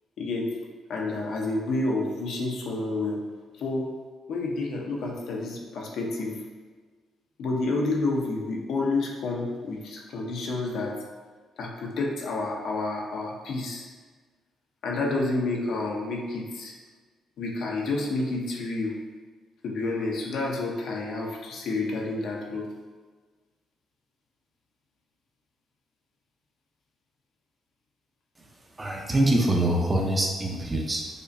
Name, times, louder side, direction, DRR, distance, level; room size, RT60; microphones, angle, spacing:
voice 1, 0.2-0.5 0.9-3.2 3.6-3.9 4.3-6.4 7.4-11.0 11.6-13.9 14.8-16.7 17.4-18.9 19.6-22.7, left 2 dB, 75° left, -1 dB, 0.6 m, -29 dB
voice 2, 28.8-31.1, right 1 dB, 25° right, 0 dB, 0.5 m, -24 dB
5.0 x 2.1 x 2.5 m, 1.4 s
cardioid pair, 90°, 0 cm